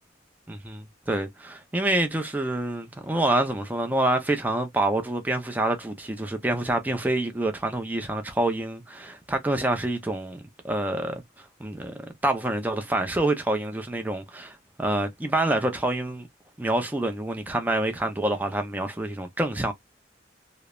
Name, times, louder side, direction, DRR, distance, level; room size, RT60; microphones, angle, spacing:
voice 1, 0.5-16.3 16.6-19.7, right 1 dB, 10° right, 0.4 m, -27 dB
3.0 x 2.0 x 2.2 m
head